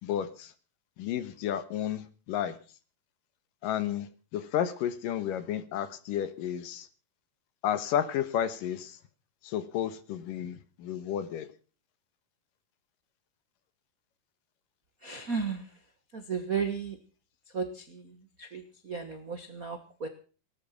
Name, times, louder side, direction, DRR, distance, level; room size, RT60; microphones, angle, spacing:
voice 1, 0.0-0.5 1.0-2.6 3.6-6.9 7.6-9.0 9.4-11.5, left 10 dB, 70° left, 12 dB, 2.8 m, -32 dB
voice 2, 15.0-15.8 16.1-17.0 17.5-20.1, right 5 dB, 75° right, 7 dB, 0.8 m, -35 dB
18.0 x 12.5 x 5.9 m, 0.39 s
omnidirectional pair, 4.2 m